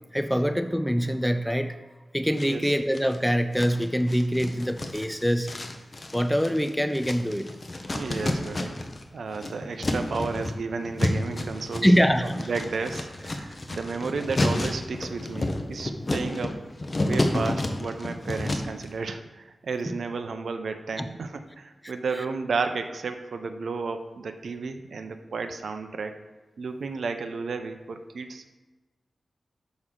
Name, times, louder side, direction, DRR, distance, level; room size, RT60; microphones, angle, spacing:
voice 1, 0.1-1.8 2.1-5.5 6.1-7.5 11.8-12.5 21.0-21.1, equal, ahead, 9 dB, 0.3 m, -24 dB
sound 1, 2.4-3.2 3.5-9.0 9.3-18.8, left 1 dB, 35° left, 0.8 m, -30 dB
voice 2, 2.4-2.7 7.9-8.7 9.1-11.9 12.2-16.6 17.0-26.1 26.6-28.6, right 4 dB, 80° right, 7 dB, 0.5 m, -32 dB
6.2 x 6.1 x 3.7 m, 1.2 s
wide cardioid pair, 75°, 0 cm